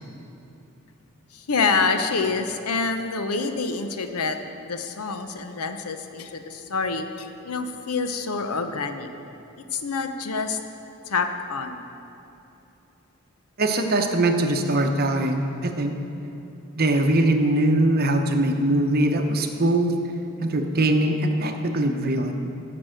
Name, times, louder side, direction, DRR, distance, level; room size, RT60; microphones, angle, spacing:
voice 1, 1.3-9.1 9.7-10.6 11.1-11.8, left 4 dB, 90° left, 7 dB, 0.8 m, -27 dB
voice 2, 13.6-15.9 16.8-19.9 20.4-22.3, right 1 dB, 45° right, 4 dB, 0.8 m, -22 dB
14.5 x 6.1 x 6.5 m, 2.9 s
head